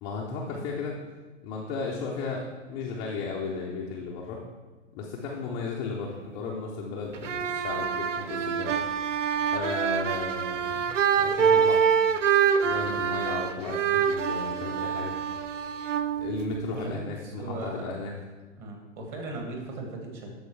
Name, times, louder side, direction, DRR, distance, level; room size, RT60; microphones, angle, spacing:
voice 1, 0.0-1.0 1.4-4.4 4.9-8.8 9.5-10.8 11.1-12.0 12.6-15.2 16.2-18.1, left 4 dB, 10° left, -3 dB, 0.3 m, -34 dB
sound 1, 7.1-16.9, right 7 dB, 80° right, 0.6 m, -26 dB
voice 2, 16.8-17.9 18.6-20.3, right 2 dB, 35° right, 1 dB, 1.8 m, -38 dB
12.5 x 4.6 x 3.1 m, 1.3 s
figure-of-eight pair, 110°, 37 cm